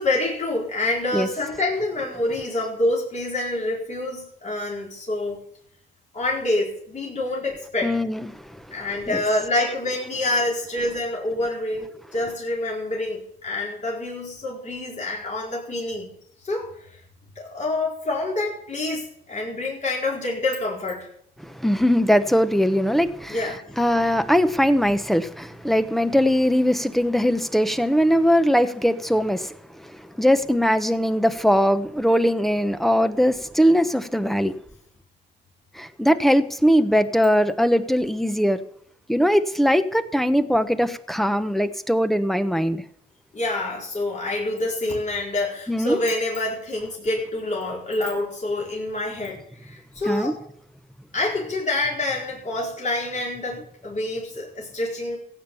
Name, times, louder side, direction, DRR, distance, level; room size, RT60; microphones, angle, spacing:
voice 1, 0.0-5.4 6.1-7.9 8.7-16.1 16.4-17.0 17.4-21.1 23.3-23.6 43.3-50.4 51.1-55.2, left 2 dB, 35° left, -4 dB, 4.4 m, -27 dB
voice 2, 7.8-8.6 9.1-9.2 21.4-34.5 35.7-38.6 39.1-42.8 45.7-46.0 50.1-50.3, equal, ahead, 11 dB, 1.0 m, -21 dB
15.5 x 8.8 x 7.1 m, 0.68 s
cardioid pair, 90°, 20 cm